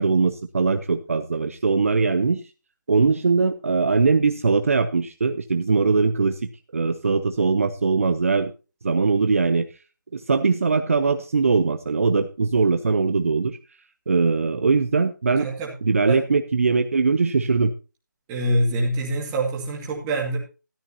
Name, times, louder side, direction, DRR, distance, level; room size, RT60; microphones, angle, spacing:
voice 1, 0.0-2.4 2.9-6.4 6.7-8.5 8.8-9.7 10.1-13.6 14.1-15.5 15.8-17.7, right 4 dB, 45° right, 9 dB, 0.9 m, -21 dB
voice 2, 15.4-15.7 16.1-16.2 18.3-20.4, right 1 dB, 10° right, -1 dB, 2.1 m, -25 dB
13.5 x 11.5 x 2.8 m, 0.32 s
figure-of-eight pair, 175°, 11 cm